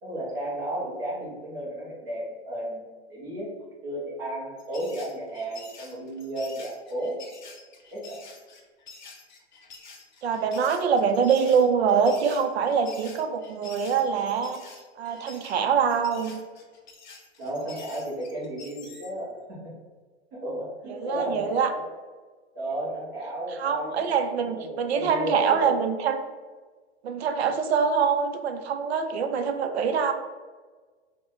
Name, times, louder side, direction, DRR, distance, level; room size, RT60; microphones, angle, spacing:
voice 1, 0.0-2.8 3.1-3.5 3.8-7.2 7.9-8.2 17.4-19.7 20.3-21.8 22.5-25.7, right 1 dB, 15° right, -7 dB, 0.5 m, -33 dB
sound 1, 4.6-19.2, left 4 dB, 45° left, 0.5 m, -48 dB
voice 2, 10.2-14.6 15.0-16.4 20.9-21.7 23.6-26.2 27.0-30.1, right 6 dB, 65° right, 7 dB, 0.5 m, -24 dB
3.2 x 2.1 x 3.7 m, 1.4 s
hypercardioid pair, 175°, 34 cm